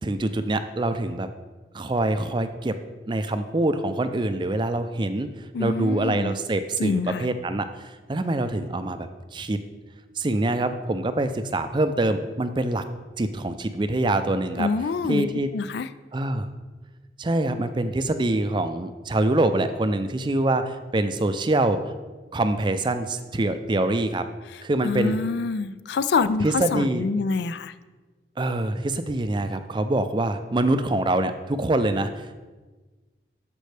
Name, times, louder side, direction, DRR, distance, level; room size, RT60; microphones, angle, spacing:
voice 1, 0.0-1.3 1.7-2.8 3.1-5.3 5.6-9.6 10.2-12.8 13.2-14.7 15.1-15.5 16.1-16.5 17.2-21.9 22.3-24.3 24.6-25.2 26.4-27.0 28.4-32.3, right 2 dB, 25° right, 10 dB, 0.4 m, -25 dB
voice 2, 5.5-6.3 6.8-7.2 14.6-15.3 15.5-15.9 24.5-27.7, left 4 dB, 65° left, 14 dB, 0.3 m, -26 dB
13.0 x 5.3 x 3.4 m, 1.3 s
head